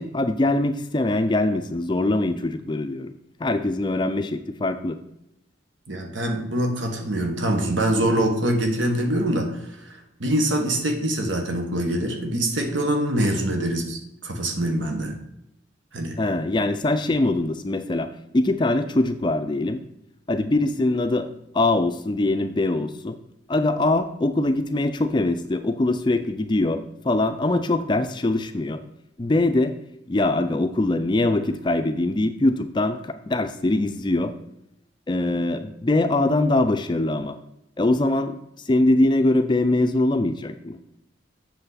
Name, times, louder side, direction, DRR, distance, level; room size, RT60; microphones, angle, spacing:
voice 1, 0.0-3.1 3.4-5.0 16.2-19.8 20.3-21.3 21.5-23.2 23.5-28.8 29.2-29.7 30.1-34.3 35.1-37.4 37.8-38.4 38.6-40.8, left 2 dB, 25° left, 9 dB, 0.4 m, -22 dB
voice 2, 5.9-9.5 9.8-15.1 15.9-16.2, right 1 dB, 90° right, 3 dB, 1.3 m, -24 dB
7.8 x 6.5 x 4.0 m, 0.80 s
head